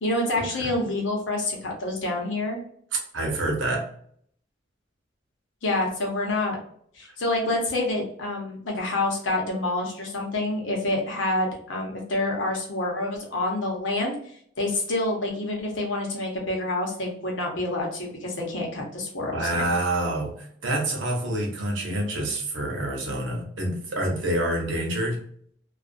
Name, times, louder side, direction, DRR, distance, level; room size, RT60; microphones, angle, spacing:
voice 1, 0.0-2.6 5.6-6.6 6.9-14.2 14.6-19.7, left 2 dB, 80° left, 0 dB, 0.9 m, -27 dB
voice 2, 3.1-3.9 19.3-25.2, right 1 dB, 80° right, 1 dB, 0.9 m, -27 dB
2.4 x 2.3 x 2.5 m, 0.63 s
head